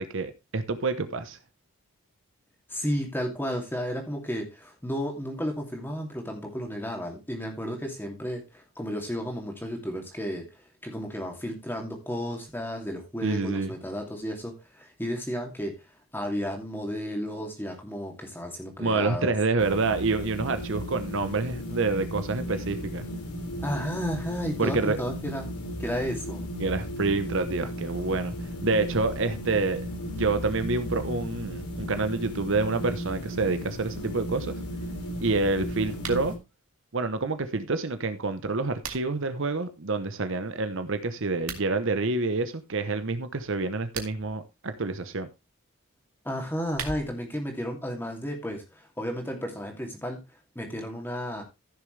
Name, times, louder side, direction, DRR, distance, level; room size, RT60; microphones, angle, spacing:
voice 1, 0.0-1.4 13.2-13.7 18.8-23.0 24.6-25.0 26.6-28.3 28.6-34.6 35.2-36.3 36.9-45.3, right 3 dB, 55° right, 0.9 m, -28 dB
voice 2, 2.7-10.5 10.8-15.7 16.1-19.3 23.6-25.5 25.8-26.5 46.2-50.2 50.5-51.4, equal, 10° left, 2.6 m, -33 dB
sound 1, 19.6-36.4, equal, 90° left, 2.9 m, -35 dB
sound 2, 36.0-36.3 38.3-39.3 41.3-41.7 43.7-44.4 46.4-47.3, right 6 dB, 75° right, 2.2 m, -39 dB
15.0 x 6.7 x 3.3 m
head